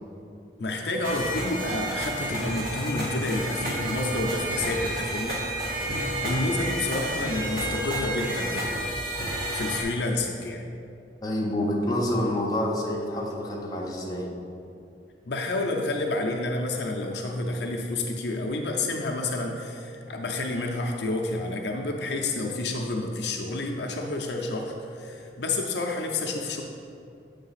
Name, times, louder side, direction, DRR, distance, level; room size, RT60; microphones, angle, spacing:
voice 1, 0.6-5.4 5.7-8.9 9.5-10.6 15.3-26.6, left 2 dB, 70° left, 1 dB, 0.6 m, -29 dB
sound 1, 1.0-9.8, right 1 dB, 50° right, 1.5 m, -30 dB
voice 2, 11.2-14.3, left 1 dB, 20° left, -3 dB, 0.9 m, -27 dB
7.4 x 3.5 x 5.7 m, 2.6 s
head